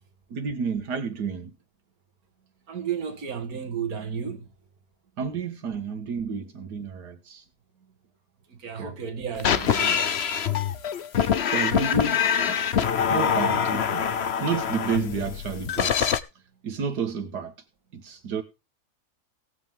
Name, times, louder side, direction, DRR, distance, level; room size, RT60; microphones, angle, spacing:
voice 1, 0.3-1.5 5.2-7.4 8.8-8.9 11.1-12.2 12.5-12.8 13.1-14.0 14.4-16.1 16.6-17.5 17.9-18.4, right 6 dB, 90° right, 2.1 m, -31 dB
voice 2, 2.7-4.5 8.5-10.2, right 7 dB, 65° right, 2.4 m, -33 dB
sound 1, 9.4-16.2, left 8 dB, 50° left, 1.0 m, -24 dB
17.5 x 8.5 x 3.6 m
omnidirectional pair, 1.7 m